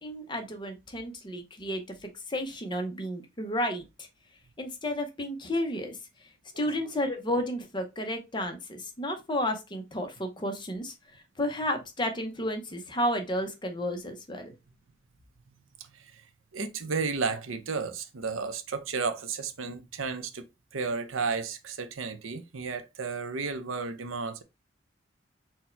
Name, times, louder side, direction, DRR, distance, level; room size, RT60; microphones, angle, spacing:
voice 1, 0.0-4.1 4.6-6.3 6.6-14.5, left 1 dB, 25° left, 0.7 m, -32 dB
voice 2, 15.5-16.2 16.5-20.5 20.7-24.4, right 4 dB, 90° right, 0.7 m, -33 dB
4.4 x 2.2 x 4.4 m
head